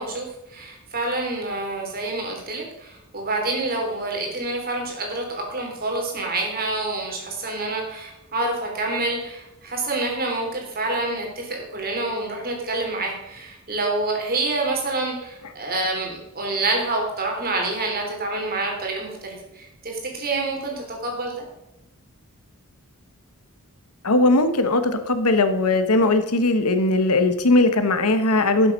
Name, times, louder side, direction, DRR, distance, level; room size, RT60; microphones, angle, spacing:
voice 1, 0.0-21.4, right 2 dB, 40° right, 1 dB, 3.2 m, -27 dB
voice 2, 24.0-28.7, left 2 dB, 80° left, 9 dB, 1.2 m, -19 dB
12.0 x 7.5 x 5.4 m, 0.93 s
head